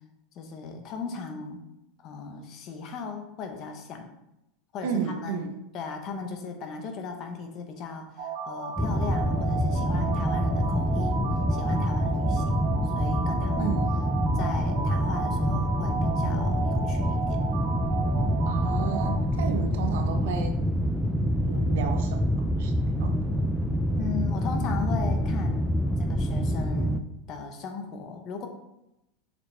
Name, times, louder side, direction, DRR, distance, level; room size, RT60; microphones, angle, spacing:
voice 1, 0.3-1.6 2.0-4.1 4.7-5.4 5.7-13.8 14.3-17.4 18.2-18.5 23.9-25.7 26.0-28.5, left 5 dB, 35° left, 5 dB, 1.0 m, -37 dB
voice 2, 4.8-5.5 13.6-13.9 18.5-20.6 21.4-22.7 23.0-23.4, right 6 dB, 75° right, 6 dB, 0.9 m, -33 dB
sound 1, 8.2-19.2, right 5 dB, 55° right, 1.6 m, -34 dB
sound 2, 8.8-27.0, equal, ahead, 0.4 m, -26 dB
6.7 x 5.1 x 3.4 m, 0.88 s
supercardioid pair, 155°, 0 cm